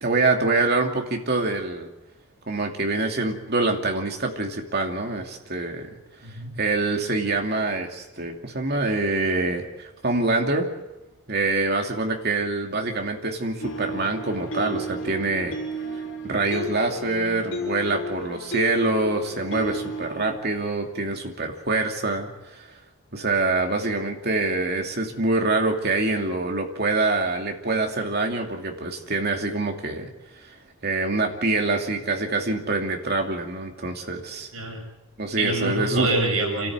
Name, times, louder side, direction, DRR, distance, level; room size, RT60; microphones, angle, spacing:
voice 1, 0.0-1.9 2.5-5.9 6.6-10.7 11.3-15.5 16.2-22.3 22.6-22.7 23.1-30.1 30.8-34.5 35.2-36.1, right 3 dB, 45° right, 2 dB, 2.7 m, -25 dB
voice 2, 6.2-6.6 34.5-34.8 35.4-36.7, right 2 dB, 85° right, 0 dB, 7.4 m, -25 dB
sound 1, 13.6-20.3, equal, 60° left, 3.9 m, -33 dB
28.0 x 13.5 x 9.0 m, 1.0 s
head